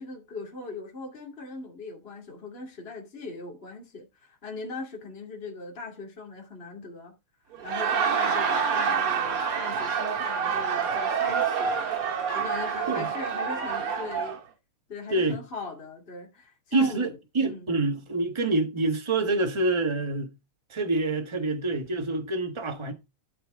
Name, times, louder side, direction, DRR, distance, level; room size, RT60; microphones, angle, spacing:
voice 1, 0.0-7.1 7.6-11.8 12.1-14.4 14.9-17.7, left 3 dB, 25° left, 2.5 m, -40 dB
Laughter, 7.5-14.4, right 6 dB, 85° right, 2.8 m, -27 dB
voice 2, 15.1-15.4 16.7-20.3 20.7-22.9, right 2 dB, 20° right, 1.0 m, -26 dB
12.0 x 5.8 x 3.6 m
omnidirectional pair, 2.4 m